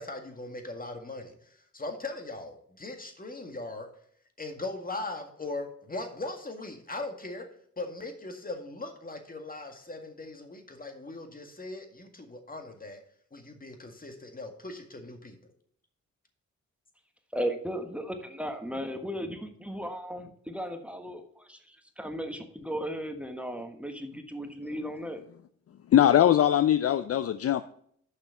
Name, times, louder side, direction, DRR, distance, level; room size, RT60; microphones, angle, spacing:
voice 1, 0.0-3.9 4.4-7.5 7.8-13.0 13.3-15.3, left 2 dB, 25° left, 5 dB, 1.9 m, -39 dB
voice 2, 17.3-25.2, equal, 5° right, 6 dB, 1.4 m, -36 dB
voice 3, 25.9-27.6, left 11 dB, 50° left, 12 dB, 0.5 m, -21 dB
6.6 x 5.7 x 6.9 m, 0.65 s
supercardioid pair, 55°, 31 cm